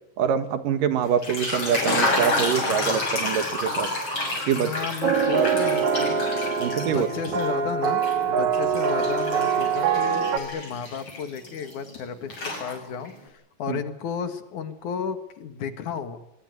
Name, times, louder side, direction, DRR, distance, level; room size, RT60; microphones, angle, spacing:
voice 1, 0.2-3.9 4.5-4.7 5.4-5.5 6.6-7.1 13.7-13.8, right 8 dB, 75° right, 11 dB, 3.1 m, -25 dB
sound 1, 1.1-7.5 7.8-12.0 12.3-13.1, left 2 dB, 35° left, 7.5 m, -29 dB
voice 2, 4.5-6.2 6.8-8.0 8.3-16.2, left 7 dB, 65° left, 10 dB, 3.1 m, -33 dB
sound 2, 5.0-10.4, right 6 dB, 60° right, 3.3 m, -24 dB
23.5 x 22.0 x 9.7 m, 0.81 s
omnidirectional pair, 4.0 m